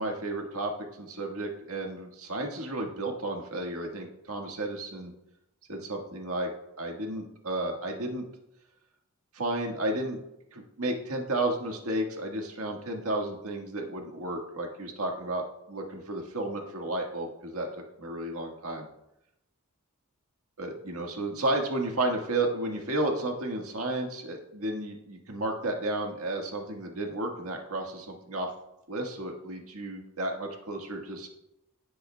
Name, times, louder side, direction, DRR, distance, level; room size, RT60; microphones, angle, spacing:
voice 1, 0.0-5.1 5.7-6.5 6.8-8.2 9.3-10.2 10.5-17.7 18.0-18.9 20.6-28.5 28.9-31.3, right 2 dB, 90° right, 1 dB, 1.6 m, -32 dB
16.5 x 7.7 x 2.3 m, 0.86 s
head